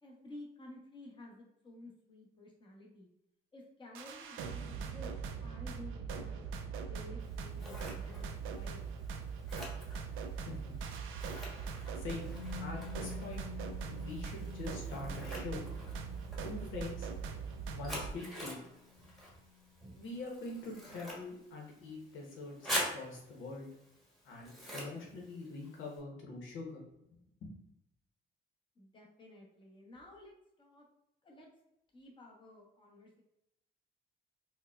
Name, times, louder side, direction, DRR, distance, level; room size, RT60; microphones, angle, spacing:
voice 1, 0.0-3.1 3.5-5.1 5.4-6.4 6.7-8.8 28.8-30.9 31.2-31.5 31.9-33.2, left 2 dB, 25° left, -2 dB, 1.0 m, -53 dB
sound 1, 3.9-18.1, right 6 dB, 85° right, 0.4 m, -41 dB
Scissors, 7.2-26.0, equal, ahead, 1.1 m, -46 dB
voice 2, 11.9-13.4 13.8-15.6 16.4-17.1 17.7-18.6 19.9-23.7 24.2-26.8 27.1-27.5, left 3 dB, 80° left, -1 dB, 0.9 m, -44 dB
Musical instrument, 12.3-20.2 20.4-20.6, left 8 dB, 15° right, 0.7 m, -51 dB
4.4 x 2.1 x 2.3 m, 0.82 s
cardioid pair, 90°, 20 cm